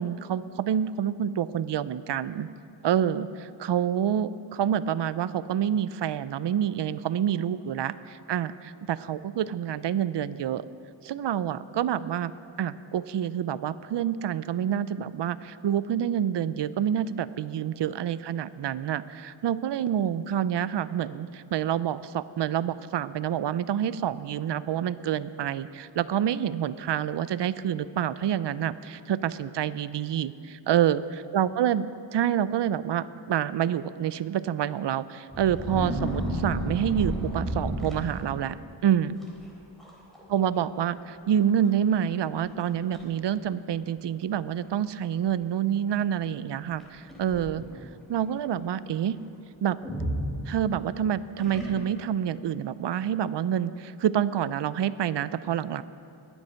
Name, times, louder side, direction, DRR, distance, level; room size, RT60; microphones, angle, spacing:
voice 1, 0.0-2.5 2.8-10.7 11.0-12.3 12.6-31.0 31.3-38.6 38.8-39.2 40.3-47.6 48.1-49.2 49.6-49.8 50.5-55.8, right 9 dB, 60° right, 15 dB, 0.5 m, -27 dB
sound 1, 35.3-38.6 39.2-39.5 39.8-40.2 40.5-40.6 41.4-41.5 42.0-42.1 42.6-43.0 43.8-43.9 46.8-47.8 49.8-50.9 51.4-52.1, equal, ahead, 3.7 m, -32 dB
21.0 x 8.1 x 5.7 m, 2.6 s
wide cardioid pair, 95°, 48 cm